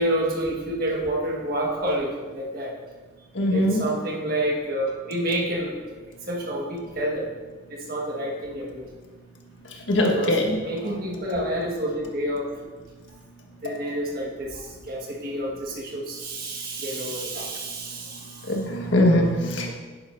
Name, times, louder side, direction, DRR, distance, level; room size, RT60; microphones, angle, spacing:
voice 1, 0.0-2.8 3.5-5.8 6.3-7.3 7.7-8.9 10.1-10.3 10.6-12.4 13.6-18.5, right 1 dB, 50° right, -1 dB, 1.7 m, -28 dB
voice 2, 3.3-3.8 9.7-10.6 18.4-19.7, left 1 dB, 80° left, 0 dB, 1.6 m, -22 dB
10.5 x 9.8 x 2.7 m, 1.4 s
head